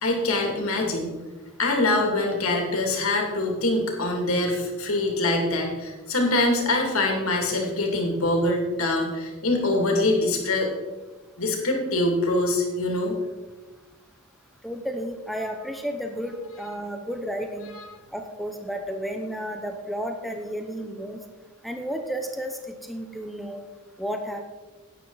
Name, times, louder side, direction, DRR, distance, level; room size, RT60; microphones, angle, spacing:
voice 1, 0.0-1.2 1.6-10.7 11.4-13.1, left 2 dB, 80° left, 1 dB, 2.5 m, -24 dB
voice 2, 14.6-17.7 18.1-21.2 21.6-22.6 22.9-23.6 24.0-24.5, equal, ahead, 4 dB, 0.8 m, -32 dB
12.0 x 9.4 x 4.0 m, 1.2 s
head